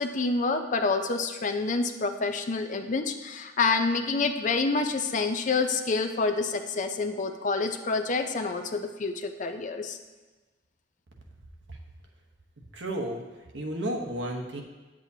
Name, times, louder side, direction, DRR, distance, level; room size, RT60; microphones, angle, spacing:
voice 1, 0.0-10.0, left 4 dB, 45° left, 6 dB, 0.5 m, -28 dB
voice 2, 12.7-13.2 13.5-14.6, right 1 dB, 80° right, 1 dB, 1.1 m, -32 dB
9.3 x 7.6 x 2.8 m, 1.2 s
head